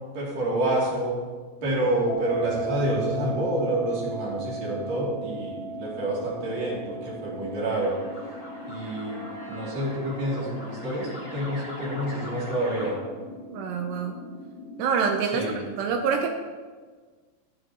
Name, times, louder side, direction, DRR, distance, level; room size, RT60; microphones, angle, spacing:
voice 1, 0.1-1.1 1.6-7.9 8.7-13.0 15.3-15.6, right 1 dB, 45° right, -6 dB, 4.1 m, -28 dB
sound 1, 1.6-15.3, left 3 dB, 75° left, 2.9 m, -43 dB
sound 2, 2.1-13.0, right 5 dB, 90° left, 3.7 m, -38 dB
sound 3, 7.6-12.9, equal, 45° left, 1.1 m, -42 dB
voice 2, 13.5-14.2 14.8-16.3, right 6 dB, 80° right, 3 dB, 2.5 m, -26 dB
15.0 x 13.5 x 3.1 m, 1.4 s
omnidirectional pair, 6.0 m